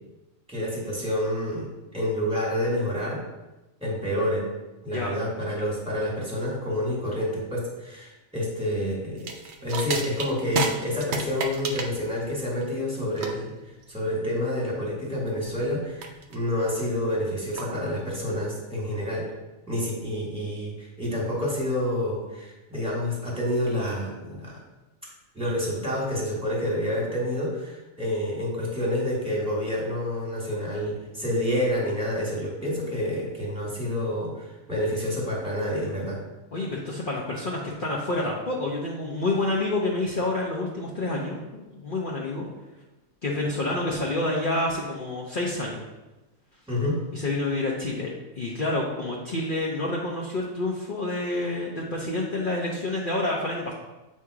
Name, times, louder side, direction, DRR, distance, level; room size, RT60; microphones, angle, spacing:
voice 1, 0.5-3.2 3.8-4.5 4.8-9.3 9.6-13.5 13.9-19.2 19.7-24.6 25.3-36.2 46.7-47.0, left 1 dB, 5° right, -4 dB, 1.6 m, -28 dB
sound 1, 9.2-18.2, right 3 dB, 60° right, 0.8 m, -33 dB
voice 2, 36.5-41.4 41.7-42.5 43.2-45.8 47.1-53.7, left 2 dB, 45° left, -3 dB, 0.8 m, -28 dB
7.3 x 2.8 x 4.7 m, 1.1 s
omnidirectional pair, 1.4 m